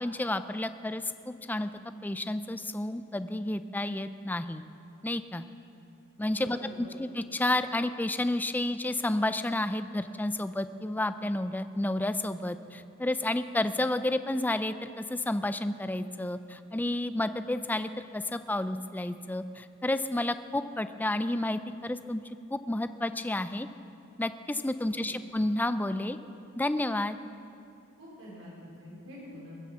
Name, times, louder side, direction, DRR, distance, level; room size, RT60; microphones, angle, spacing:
voice 1, 0.0-1.7 2.0-4.6 5.0-5.4 6.2-22.2 22.5-23.7 24.2-26.2 26.6-27.2, left 1 dB, 10° left, 11 dB, 0.4 m, -31 dB
voice 2, 6.3-6.9 24.8-25.1 28.0-29.6, left 1 dB, 70° right, -6 dB, 4.6 m, -47 dB
21.0 x 7.8 x 7.4 m, 2.6 s
head